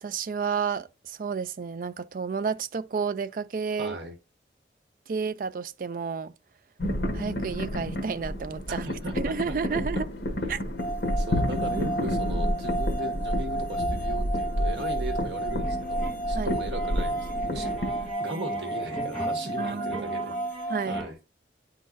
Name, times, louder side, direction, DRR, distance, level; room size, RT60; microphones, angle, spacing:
voice 1, 0.0-4.0 5.1-6.3 7.1-8.9 9.1-10.1 10.5-10.6 16.4-16.6 19.6-21.0, right 5 dB, 50° right, 0.3 m, -31 dB
voice 2, 3.8-4.2 8.7-9.8 11.2-21.2, right 1 dB, 75° right, 1.5 m, -37 dB
sound 1, 6.8-18.1, equal, 70° left, 1.3 m, -30 dB
sound 2, 10.8-21.0, right 2 dB, 45° left, 1.3 m, -32 dB
sound 3, 15.5-21.1, right 1 dB, 5° left, 1.6 m, -40 dB
10.0 x 3.9 x 2.5 m
head